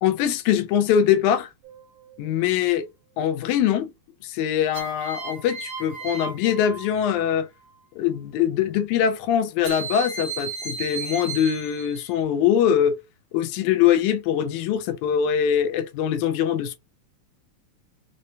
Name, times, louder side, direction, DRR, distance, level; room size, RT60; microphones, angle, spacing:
voice 1, 0.0-1.5 2.2-2.9 3.2-3.9 4.2-7.5 8.0-13.0 13.3-16.8, left 9 dB, 85° left, 2.0 m, -22 dB
sound 1, 1.6-2.2 4.7-7.4 9.6-12.2, right 4 dB, 65° right, 2.2 m, -35 dB
4.8 x 2.2 x 2.6 m
omnidirectional pair, 3.4 m